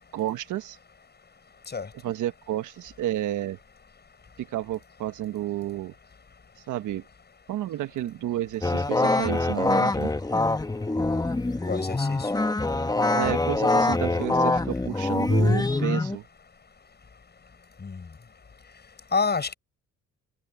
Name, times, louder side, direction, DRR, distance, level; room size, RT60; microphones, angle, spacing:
voice 1, 0.1-0.8 2.0-3.6 4.4-5.9 6.7-7.0 7.5-10.1 13.1-16.2, right 13 dB, 80° right, 1.3 m, -31 dB
sound 1, 8.6-16.2, left 2 dB, 15° left, 1.3 m, -24 dB
voice 2, 11.7-12.3 17.8-18.0 19.1-19.5, left 4 dB, 35° left, 6.3 m, -28 dB
cardioid pair, 90°, 30 cm